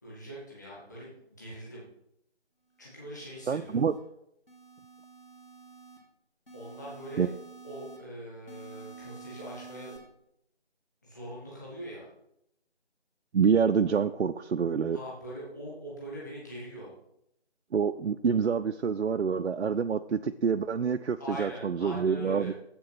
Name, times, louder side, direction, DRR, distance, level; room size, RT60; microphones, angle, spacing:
voice 1, 0.0-1.8 2.8-3.8 6.5-7.3 7.6-10.0 11.0-12.1 14.9-16.9 21.2-22.5, equal, 15° left, -6 dB, 1.8 m, -42 dB
sound 1, 2.9-4.0 4.5-6.0 6.5-8.0 8.5-10.0, right 5 dB, 55° left, 2.9 m, -49 dB
voice 2, 3.5-3.9 7.2-7.3 13.3-15.0 17.7-22.5, right 6 dB, 90° right, 8 dB, 0.5 m, -27 dB
7.7 x 6.8 x 5.8 m, 0.79 s
figure-of-eight pair, 170°, 33 cm